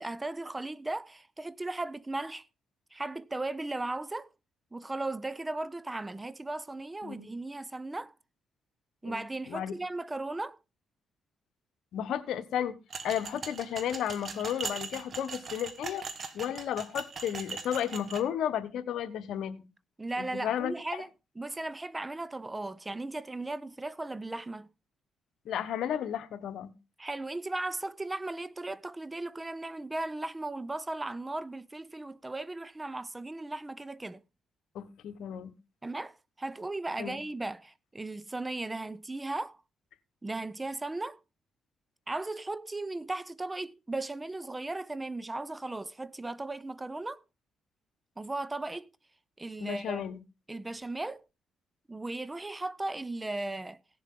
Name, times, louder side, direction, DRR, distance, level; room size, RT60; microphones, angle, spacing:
voice 1, 0.0-2.5 2.9-4.3 4.7-8.1 9.0-10.6 20.0-21.1 21.4-24.7 27.0-34.2 35.8-39.6 40.2-41.2 42.1-47.2 48.2-48.9 49.4-50.0 50.5-51.2 51.9-53.8, right 2 dB, 15° right, 0.5 m, -36 dB
voice 2, 9.0-9.7 11.9-12.8 13.0-16.1 16.3-19.7 20.2-20.7 25.4-26.7 34.7-35.5 37.0-37.2 49.6-50.2, left 9 dB, 75° left, 1.1 m, -33 dB
sound 1, 12.9-18.2, right 4 dB, 45° right, 1.3 m, -40 dB
17.0 x 7.3 x 3.7 m
cardioid pair, 90°, 0 cm